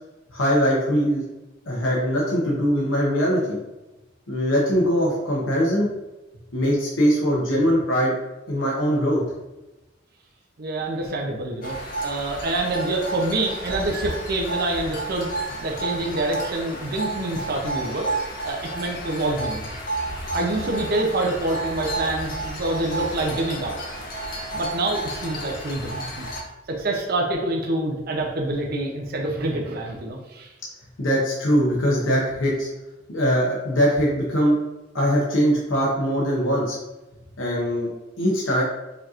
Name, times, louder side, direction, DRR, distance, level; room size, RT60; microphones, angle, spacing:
voice 1, 0.3-1.2 1.7-3.6 4.3-5.9 6.5-8.2 8.5-9.2 31.0-32.7 33.1-34.6 34.9-36.8 37.4-37.9 38.2-38.6, equal, 85° left, -4 dB, 0.8 m, -21 dB
voice 2, 10.6-11.8 12.0-15.3 15.6-18.1 18.4-19.7 20.3-23.7 24.5-26.3 26.7-30.5, right 2 dB, 50° right, 0 dB, 0.6 m, -26 dB
sound 1, 11.6-26.4, right 2 dB, 45° left, 0.7 m, -31 dB
5.0 x 2.9 x 2.4 m, 1.0 s
head